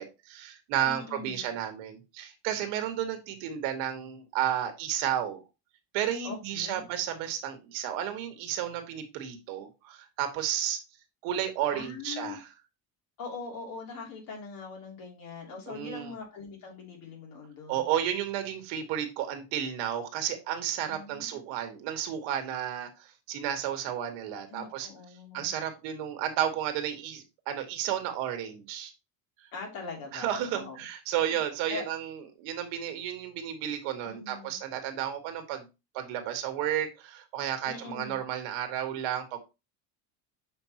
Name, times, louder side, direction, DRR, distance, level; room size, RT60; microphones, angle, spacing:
voice 1, 0.0-5.4 5.9-10.8 11.2-12.4 15.7-16.1 17.7-24.9 25.3-28.9 29.4-29.5 30.1-35.7 35.9-39.4, right 10 dB, 90° right, 1.8 m, -32 dB
voice 2, 0.8-1.5 6.2-6.8 11.7-12.4 13.2-17.9 20.9-21.4 24.5-25.5 29.5-30.8 31.1-31.2 31.7-31.9 34.0-34.6 37.6-38.2, left 4 dB, 50° left, 3.1 m, -42 dB
7.1 x 5.3 x 3.0 m
cardioid pair, 150°, 43 cm